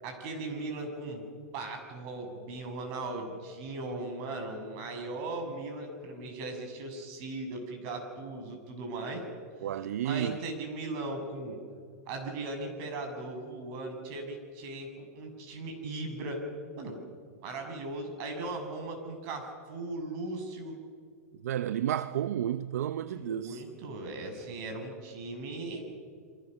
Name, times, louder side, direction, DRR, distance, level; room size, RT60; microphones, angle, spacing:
voice 1, 0.0-1.2 1.5-9.2 9.7-11.6 12.1-16.4 16.8-17.0 17.4-20.8 23.1-25.8, right 2 dB, 50° right, 7.3 m, -38 dB
voice 2, 9.6-10.4 21.4-23.6, right 11 dB, 75° right, 0.8 m, -31 dB
29.5 x 24.0 x 6.7 m
hypercardioid pair, 115°, 8 cm